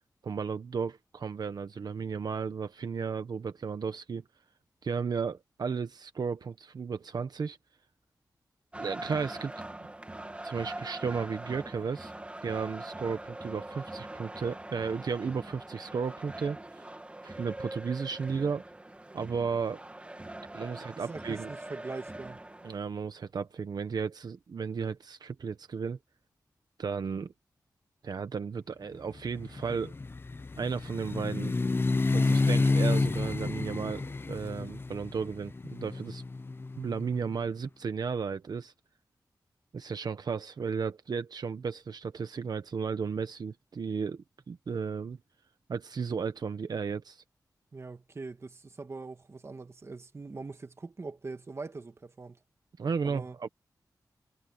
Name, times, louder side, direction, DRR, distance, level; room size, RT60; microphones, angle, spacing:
voice 1, 0.2-4.2 4.8-7.6 8.8-9.5 10.4-12.1 12.4-16.8 17.2-18.6 19.1-19.8 20.5-21.5 22.6-26.0 26.8-27.3 28.0-29.9 30.6-31.6 32.1-36.2 36.8-38.7 39.7-45.2 45.7-47.2 52.8-53.5, right 5 dB, 70° right, 1.1 m, -34 dB
sound 1, 8.7-22.8, right 1 dB, 15° right, 2.2 m, -43 dB
voice 2, 21.0-22.4 47.7-52.4 53.0-53.4, right 3 dB, 40° right, 1.6 m, -42 dB
sound 2, 29.2-37.2, left 3 dB, 30° left, 0.7 m, -29 dB
wide cardioid pair, 135°, 7 cm